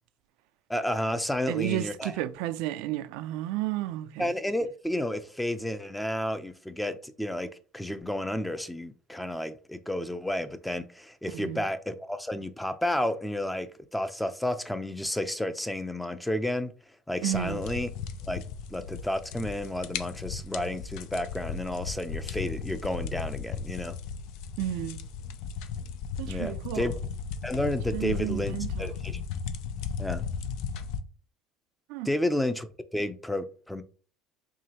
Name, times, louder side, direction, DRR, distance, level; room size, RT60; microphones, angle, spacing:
voice 1, 0.7-2.1 4.2-16.7 17.1-17.9 18.3-18.4 18.7-24.0 26.3-26.9 27.4-29.2 30.0-30.2 32.0-33.8, left 1 dB, 5° left, 0.5 m, -31 dB
voice 2, 1.5-4.3 11.3-11.6 17.2-17.6 24.6-25.0 26.2-26.9 27.9-28.9 31.9-32.1, right 14 dB, 80° right, 0.3 m, -32 dB
sound 1, 17.3-31.0, left 6 dB, 75° left, 0.4 m, -36 dB
4.8 x 3.0 x 2.9 m
supercardioid pair, 95°, 0 cm